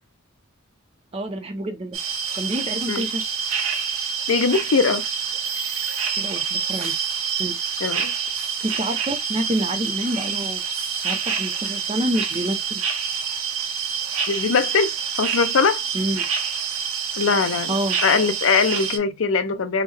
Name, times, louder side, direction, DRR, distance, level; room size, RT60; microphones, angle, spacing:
voice 1, 1.1-2.0 2.3-3.2 6.1-6.9 7.4-7.5 8.6-10.6 10.9-12.8 15.9-16.2 17.7-18.0, right 1 dB, 30° right, 0.5 m, -27 dB
sound 1, 1.9-19.0, right 6 dB, 75° right, 0.8 m, -27 dB
voice 2, 4.3-5.0 7.8-8.1 14.3-15.8 17.2-17.7 18.0-19.8, left 5 dB, 70° left, 0.5 m, -21 dB
3.6 x 2.0 x 3.3 m
head